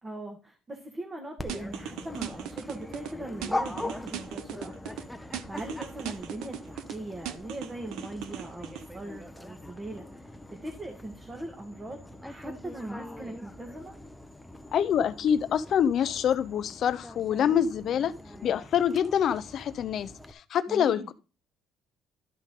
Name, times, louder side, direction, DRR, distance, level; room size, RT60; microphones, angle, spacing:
voice 1, 0.0-13.9 20.7-21.1, right 1 dB, 20° right, 1.7 m, -40 dB
Dog, 1.4-20.3, left 1 dB, 5° left, 0.9 m, -42 dB
sound 1, 1.5-3.1 3.4-5.0 5.3-7.0 7.3-8.8, right 10 dB, 85° right, 0.8 m, -38 dB
voice 2, 14.7-18.1 18.4-21.1, left 9 dB, 55° left, 0.7 m, -26 dB
12.5 x 5.4 x 3.8 m
cardioid pair, 110°, 0 cm